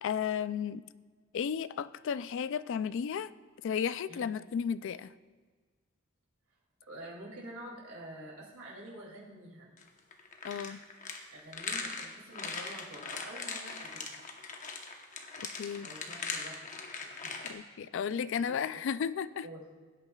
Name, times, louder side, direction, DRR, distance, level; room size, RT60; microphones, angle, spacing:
voice 1, 0.0-0.8 1.3-3.3 3.6-5.1 10.4-10.8 15.6-15.9 17.4-19.5, left 7 dB, 60° left, 15 dB, 0.3 m, -33 dB
voice 2, 6.9-9.7 11.3-14.1 15.8-17.6 18.4-18.8 19.4-19.8, right 1 dB, 85° right, -3 dB, 2.7 m, -48 dB
sound 1, 9.8-17.5, left 4 dB, 35° left, 0.9 m, -40 dB
17.0 x 8.9 x 2.3 m, 1.5 s
head